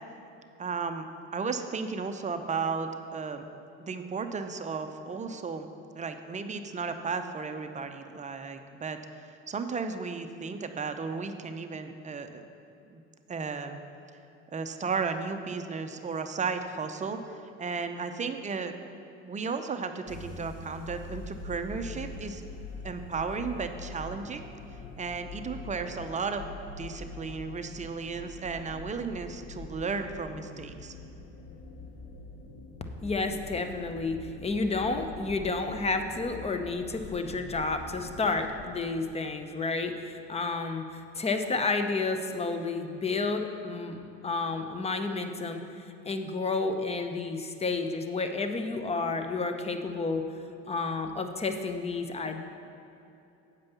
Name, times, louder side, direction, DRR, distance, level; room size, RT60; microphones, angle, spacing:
voice 1, 0.6-1.1 1.3-3.5 3.8-5.7 5.9-12.4 12.9-13.0 13.3-13.8 14.5-18.7 19.2-22.4 22.8-24.4 25.0-30.9, right 5 dB, 20° right, 7 dB, 0.6 m, -34 dB
sound 1, 20.1-38.7, left 3 dB, 45° left, 1.0 m, -44 dB
voice 2, 33.0-45.6 46.0-50.2 50.7-52.4, left 3 dB, 20° left, 7 dB, 0.7 m, -31 dB
8.2 x 5.3 x 6.8 m, 2.8 s
supercardioid pair, 95°, 33 cm